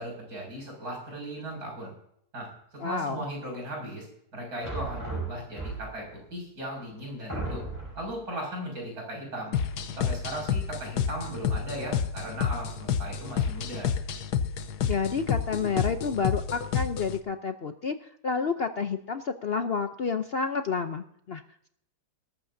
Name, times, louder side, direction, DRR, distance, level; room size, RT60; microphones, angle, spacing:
voice 1, 0.0-1.9 2.3-2.5 2.8-4.1 4.3-7.6 7.9-9.6 10.0-13.9, right 1 dB, 70° right, 0 dB, 7.0 m, -37 dB
voice 2, 2.8-3.3 14.9-21.4, left 5 dB, 50° left, 7 dB, 0.8 m, -30 dB
sound 1, 4.6-6.1 6.8-6.9 7.3-8.1, right 3 dB, 10° right, 4.4 m, -35 dB
sound 2, 9.5-17.2, left 7 dB, 85° left, 1.4 m, -30 dB
18.0 x 14.5 x 2.7 m, 0.69 s
omnidirectional pair, 1.7 m